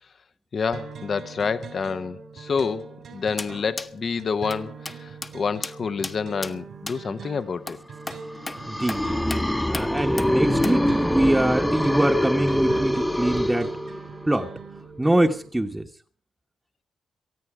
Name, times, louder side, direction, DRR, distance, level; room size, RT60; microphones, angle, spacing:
voice 1, 0.5-7.8, left 5 dB, 50° left, 0.9 m, -28 dB
sound 1, 0.7-15.5, right 5 dB, 65° right, 3.0 m, -42 dB
sound 2, 3.4-3.5 3.8-3.9 4.5-4.6 4.8-5.0 5.2-5.3 5.6-5.7 6.0-6.2 6.4-6.5 6.9-7.0 7.7-7.8 8.1-8.2 8.5-8.6 8.9-9.0 9.3-9.4 9.7-9.9 10.2-10.3 10.6-10.8, left 2 dB, 25° left, 1.1 m, -33 dB
sound 3, 8.4-14.3, left 1 dB, 10° left, 1.1 m, -24 dB
voice 2, 8.7-9.2 9.7-13.7 14.3-14.5 15.0-15.9, right 1 dB, 10° right, 1.2 m, -23 dB
19.0 x 13.5 x 4.9 m
cardioid pair, 75°, 0 cm